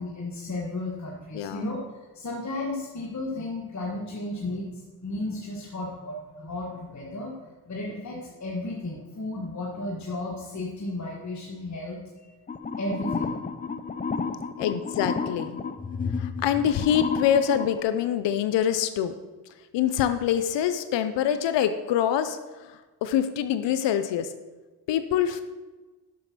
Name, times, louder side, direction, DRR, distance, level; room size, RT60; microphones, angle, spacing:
voice 1, 0.0-1.8 2.1-12.3 12.8-13.4, left 2 dB, 40° left, -3 dB, 1.6 m, -34 dB
voice 2, 1.3-1.7 14.0-14.1 14.6-15.6 16.2-19.1 19.7-24.3 24.9-25.4, left 9 dB, 90° left, 10 dB, 0.6 m, -25 dB
sound 1, 12.5-17.8, left 4 dB, 20° left, 0.5 m, -31 dB
7.5 x 6.1 x 5.9 m, 1.2 s
cardioid pair, 75°, 42 cm